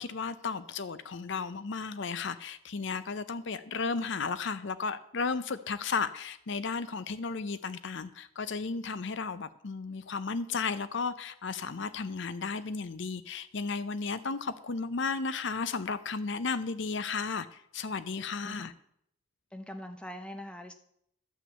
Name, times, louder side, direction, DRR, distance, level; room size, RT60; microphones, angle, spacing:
voice 1, 0.0-18.7, left 4 dB, 55° left, 14 dB, 0.6 m, -34 dB
voice 2, 19.5-20.7, left 1 dB, 5° left, 7 dB, 0.9 m, -42 dB
12.5 x 6.1 x 8.1 m, 0.71 s
head